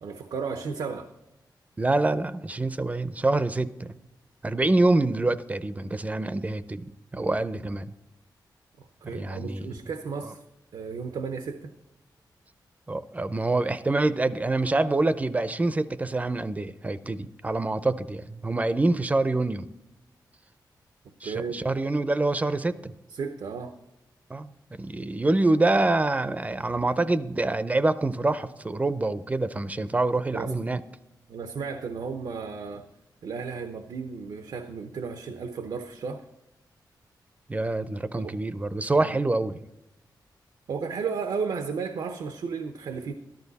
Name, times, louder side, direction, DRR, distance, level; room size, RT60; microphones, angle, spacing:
voice 1, 0.0-1.1 9.0-10.4 10.7-11.7 21.2-21.7 23.1-23.7 30.3-30.5 31.3-32.9 33.2-36.2 38.2-38.3 39.0-39.2 40.7-43.1, right 5 dB, 85° right, 0.8 m, -34 dB
voice 2, 1.8-4.0 4.4-6.9 7.1-7.9 9.1-9.7 10.2-10.3 12.9-19.7 21.2-22.9 24.3-30.8 37.5-39.6, right 2 dB, 20° right, 0.5 m, -26 dB
13.5 x 12.0 x 4.1 m
wide cardioid pair, 120°, 8 cm